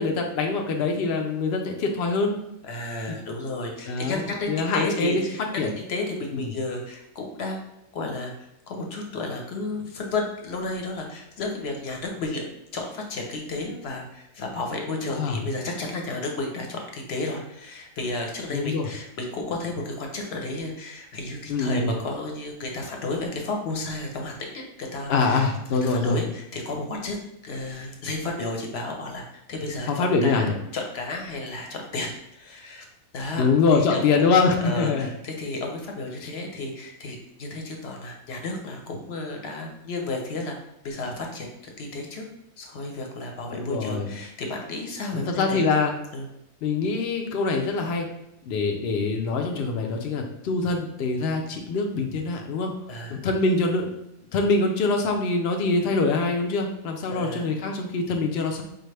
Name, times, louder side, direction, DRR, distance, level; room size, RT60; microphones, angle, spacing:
voice 1, 0.0-2.4 3.1-3.2 3.9-5.2 5.6-5.7 6.3-6.5 15.1-15.4 18.5-18.9 21.5-21.9 25.1-26.2 29.9-30.5 33.4-35.1 36.2-36.3 43.5-44.1 45.2-45.9 46.6-48.1 48.4-52.7 53.1-53.9 54.3-58.6, left 3 dB, 75° left, 2 dB, 0.5 m, -24 dB
voice 2, 2.6-7.6 7.9-8.3 8.7-12.4 12.7-25.5 25.8-27.2 27.4-32.8 33.1-33.4 33.7-34.3 34.6-40.6 40.8-42.2 42.6-45.7 46.1-46.3 52.9-53.2 57.1-57.4, left 2 dB, 55° left, 1 dB, 0.8 m, -32 dB
4.7 x 2.4 x 3.2 m, 0.83 s
omnidirectional pair, 1.6 m